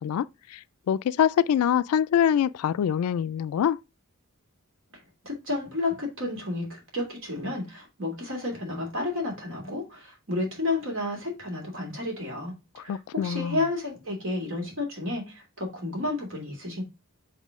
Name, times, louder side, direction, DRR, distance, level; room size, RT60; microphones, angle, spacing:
voice 1, 0.0-3.8 12.9-13.6, left 8 dB, 85° left, 0.3 m, -25 dB
voice 2, 4.9-16.8, left 2 dB, 60° right, 2.8 m, -31 dB
7.4 x 3.7 x 3.5 m
head